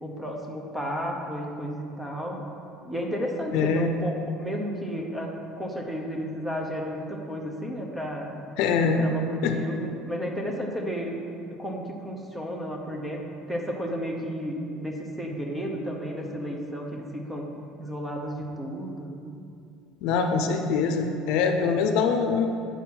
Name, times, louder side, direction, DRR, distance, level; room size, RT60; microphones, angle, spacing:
voice 1, 0.0-2.4 2.8-8.3 8.8-17.4 17.8-19.1, equal, 5° right, 0 dB, 0.8 m, -33 dB
voice 2, 3.5-4.0 8.6-9.0 9.4-9.5 20.0-22.5, left 5 dB, 65° left, 5 dB, 0.6 m, -23 dB
8.3 x 4.1 x 5.9 m, 2.5 s
cardioid pair, 160°, 0 cm